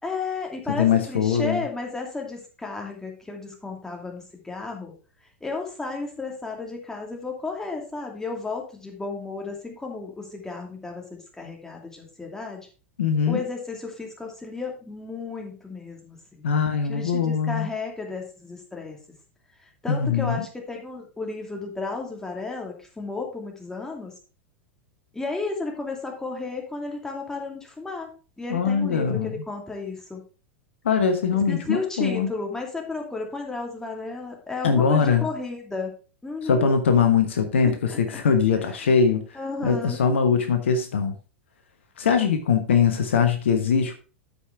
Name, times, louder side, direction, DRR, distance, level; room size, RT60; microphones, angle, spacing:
voice 1, 0.0-4.9 5.4-12.6 13.3-16.4 16.9-19.0 19.8-24.1 25.1-28.1 28.4-30.2 31.5-35.9 36.2-36.7 37.6-38.2 38.6-38.7 39.3-40.0, left 3 dB, 10° left, 1 dB, 2.7 m, -33 dB
voice 2, 0.8-1.6 13.0-13.4 16.4-17.7 19.9-20.4 28.5-29.3 30.8-32.3 34.6-35.3 36.4-39.2 39.6-41.2 42.0-43.9, left 6 dB, 65° left, 7 dB, 1.2 m, -21 dB
13.0 x 5.4 x 3.5 m, 0.35 s
figure-of-eight pair, 90°, 7 cm